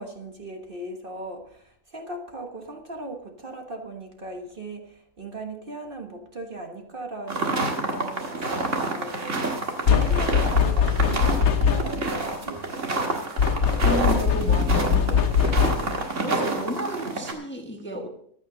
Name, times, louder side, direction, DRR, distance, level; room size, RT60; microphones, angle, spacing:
voice 1, 0.0-8.6 8.9-9.5 9.8-13.0, right 2 dB, 40° right, 1.5 m, -38 dB
sound 1, 7.3-17.3, right 3 dB, 60° right, 2.1 m, -28 dB
sound 2, 9.9-12.1 13.4-16.0, left 7 dB, 85° left, 1.4 m, -21 dB
voice 2, 13.8-15.7 16.2-18.1, equal, 10° left, 1.3 m, -32 dB
15.0 x 10.5 x 3.9 m
omnidirectional pair, 1.5 m